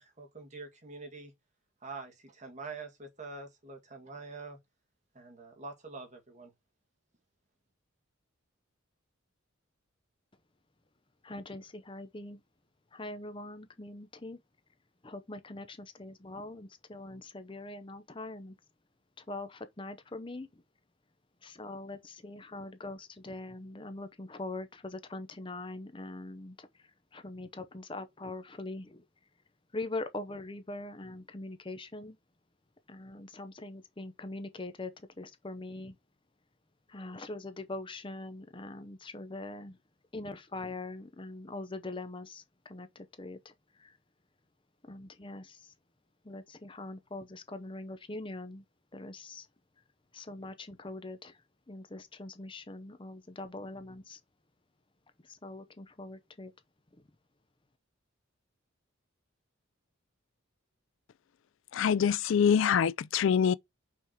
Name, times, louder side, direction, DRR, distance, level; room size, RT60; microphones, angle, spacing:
voice 1, 0.0-1.3 1.8-4.6 5.1-6.5, right 3 dB, 35° right, 2.0 m, -45 dB
voice 2, 11.2-12.4 12.9-14.4 15.0-18.5 19.2-20.6 21.4-29.0 29.7-32.2 32.9-34.9 35.2-36.0 36.9-39.8 40.1-44.0 44.8-45.7 46.2-48.6 48.9-49.5 50.1-54.2 55.2-56.5, left 2 dB, 25° left, 0.7 m, -42 dB
voice 3, 61.7-63.5, left 7 dB, 65° left, 0.3 m, -25 dB
5.7 x 4.7 x 4.6 m
head